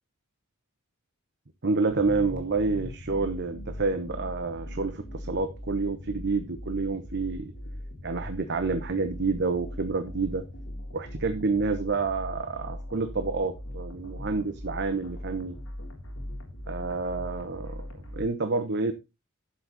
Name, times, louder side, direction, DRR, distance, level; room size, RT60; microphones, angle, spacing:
voice 1, 1.6-7.5 8.0-10.4 10.9-15.5 16.7-17.9 18.1-18.9, right 3 dB, 55° right, 1.0 m, -28 dB
sound 1, 1.9-18.3, left 1 dB, 70° left, 3.7 m, -39 dB
11.5 x 7.8 x 4.1 m
head